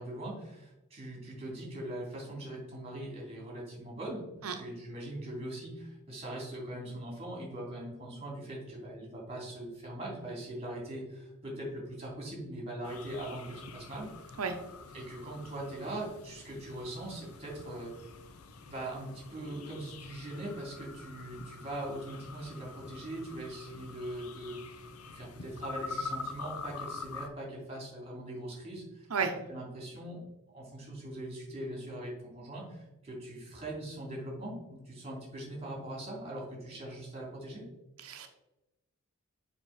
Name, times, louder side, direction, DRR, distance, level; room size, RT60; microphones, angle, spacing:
voice 1, 0.0-14.1 14.9-17.9 18.7-24.6 25.0-29.1 29.5-30.2 30.5-37.6, right 1 dB, 30° right, -2 dB, 2.8 m, -41 dB
voice 2, 4.4-4.5 14.4-14.6 29.1-29.3 38.0-38.3, right 5 dB, 80° right, 5 dB, 0.7 m, -32 dB
sound 1, 12.8-27.3, left 4 dB, 85° left, 0.7 m, -45 dB
7.3 x 5.3 x 4.0 m, 0.99 s
head